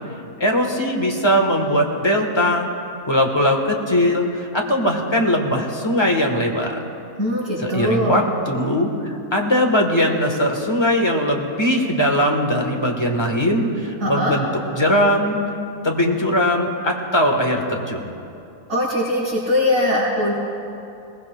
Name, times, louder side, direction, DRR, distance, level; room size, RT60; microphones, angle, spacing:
voice 1, 0.4-2.7 3.1-6.8 7.6-14.4 14.7-15.4 15.8-18.1, equal, 20° left, 1 dB, 1.1 m, -20 dB
voice 2, 7.2-8.2 14.0-14.3 18.7-20.3, left 1 dB, 55° right, -12 dB, 4.1 m, -21 dB
21.0 x 19.5 x 2.3 m, 2.7 s
omnidirectional pair, 1.7 m